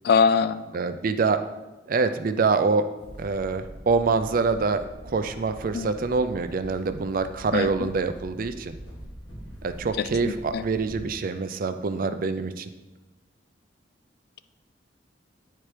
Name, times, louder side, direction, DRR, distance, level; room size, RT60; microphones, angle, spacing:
voice 1, 0.0-0.6 5.7-5.9 7.5-7.9 10.2-10.6, left 5 dB, 55° left, 13 dB, 0.3 m, -23 dB
voice 2, 0.7-1.4 1.9-2.9 3.2-8.7 9.6-12.7, right 4 dB, 50° right, 10 dB, 0.4 m, -25 dB
sound 1, 3.0-11.0, right 1 dB, 85° left, 1.4 m, -44 dB
9.7 x 4.5 x 3.3 m, 1.1 s
head